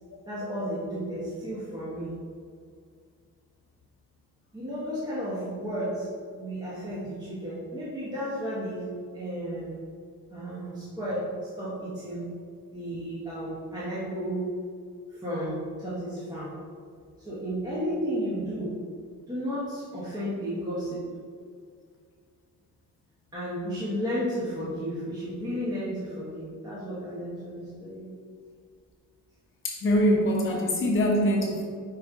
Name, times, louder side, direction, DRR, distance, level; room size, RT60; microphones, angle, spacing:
voice 1, 0.3-2.1 4.5-6.1 6.4-8.9 9.1-9.7 10.3-12.3 12.7-14.5 15.1-16.6 17.2-18.8 19.3-21.0 23.3-28.1, equal, 10° right, -9 dB, 1.0 m, -33 dB
voice 2, 29.6-31.7, equal, 40° left, -2 dB, 1.0 m, -23 dB
5.2 x 5.1 x 3.6 m, 2.1 s
cardioid pair, 160°, 32 cm